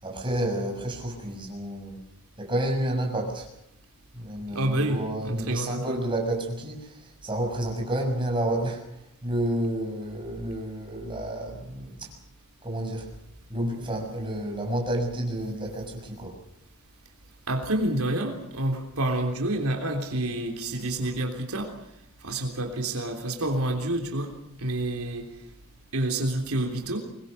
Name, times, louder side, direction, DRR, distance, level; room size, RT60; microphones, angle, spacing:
voice 1, 0.0-2.0 2.4-3.5 4.1-12.1 12.6-13.1 13.5-16.4, right 1 dB, 20° right, 1 dB, 6.5 m, -30 dB
voice 2, 4.5-6.0 17.5-21.7 22.2-24.3 24.6-25.3 25.9-27.0, right 1 dB, 80° right, 4 dB, 3.5 m, -28 dB
25.0 x 21.0 x 6.7 m, 0.76 s
head